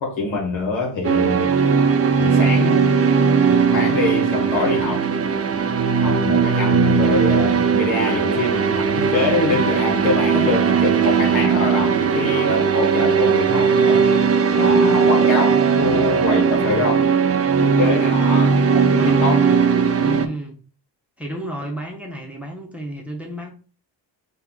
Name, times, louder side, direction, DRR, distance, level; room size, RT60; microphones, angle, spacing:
voice 1, 0.0-1.6 2.2-2.9 3.7-5.1 6.0-14.1 14.5-17.1 17.6-19.5, left 3 dB, 90° left, 1.7 m, -24 dB
sound 1, 1.0-20.3, right 6 dB, 30° right, 0.5 m, -18 dB
voice 2, 18.9-19.2 20.0-20.6 21.2-23.5, right 1 dB, 5° right, 1.1 m, -32 dB
4.4 x 3.1 x 3.8 m
cardioid pair, 75°, 46 cm